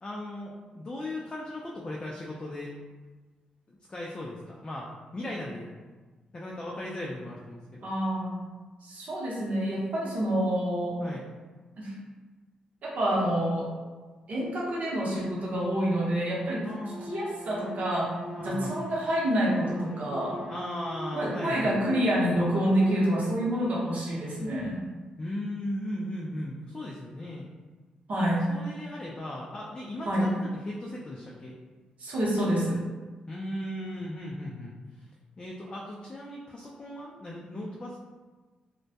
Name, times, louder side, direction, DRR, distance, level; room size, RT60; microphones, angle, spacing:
voice 1, 0.0-2.7 3.7-5.7 6.3-7.9 11.0-11.3 16.6-17.2 18.4-18.8 20.5-21.8 25.2-27.5 28.5-31.6 33.3-35.1 35.4-38.0, left 1 dB, 30° left, -4 dB, 0.4 m, -37 dB
voice 2, 7.8-8.4 8.8-11.0 11.8-11.9 12.8-13.7 14.3-16.6 17.1-18.1 18.4-20.4 21.1-24.8 28.1-28.5 30.1-30.2 32.0-32.8, equal, 60° right, -5 dB, 0.8 m, -27 dB
Bowed string instrument, 16.4-23.9, right 1 dB, 10° right, 0.7 m, -42 dB
2.1 x 2.1 x 2.7 m, 1.3 s
supercardioid pair, 60°, 3 cm